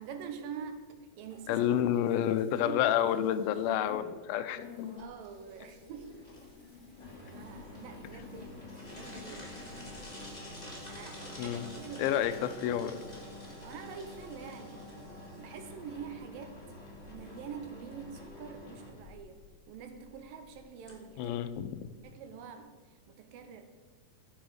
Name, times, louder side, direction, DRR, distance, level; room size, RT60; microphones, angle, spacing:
voice 1, 0.0-1.7 2.2-2.8 5.0-6.3 7.2-9.6 10.9-12.2 13.6-14.8 15.4-16.6 17.1-19.4 19.7-21.4 22.0-23.6, right 7 dB, 75° right, 7 dB, 2.6 m, -45 dB
sound 1, 1.3-4.1 4.4-16.3 16.6-17.5, left 6 dB, 60° left, 4.7 m, -54 dB
voice 2, 1.5-4.7 11.4-11.7 12.0-13.0 21.2-21.9, left 10 dB, 85° left, 12 dB, 2.5 m, -29 dB
sound 2, 5.0-22.0, left 1 dB, 20° left, 1.3 m, -48 dB
16.0 x 6.4 x 4.9 m, 1.4 s
omnidirectional pair, 4.1 m